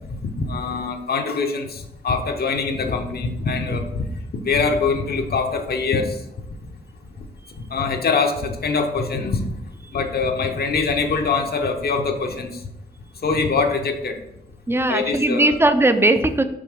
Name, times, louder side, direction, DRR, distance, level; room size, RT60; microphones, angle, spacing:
voice 1, 0.2-4.1 4.4-6.2 7.2-7.3 7.7-9.5 9.9-12.6 13.2-14.2 14.9-15.6, left 4 dB, 60° left, 4 dB, 0.8 m, -23 dB
voice 2, 14.7-16.4, right 2 dB, 15° right, 9 dB, 0.5 m, -18 dB
5.5 x 5.2 x 3.6 m, 0.84 s
wide cardioid pair, 90°, 18 cm